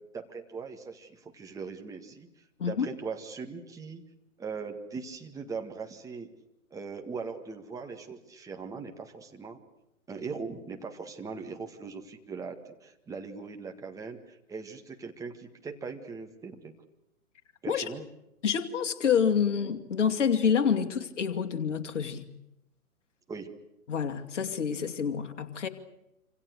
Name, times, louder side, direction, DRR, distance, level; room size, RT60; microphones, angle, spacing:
voice 1, 0.1-2.3 2.7-4.0 4.4-6.3 6.7-9.6 10.1-16.7 17.6-18.1 20.8-20.9 23.3-23.5, right 5 dB, 5° right, 3 dB, 1.9 m, -40 dB
voice 2, 18.4-22.2 23.9-25.7, left 7 dB, 55° left, 7 dB, 2.6 m, -27 dB
27.0 x 27.0 x 6.7 m, 0.87 s
figure-of-eight pair, 130°, 44 cm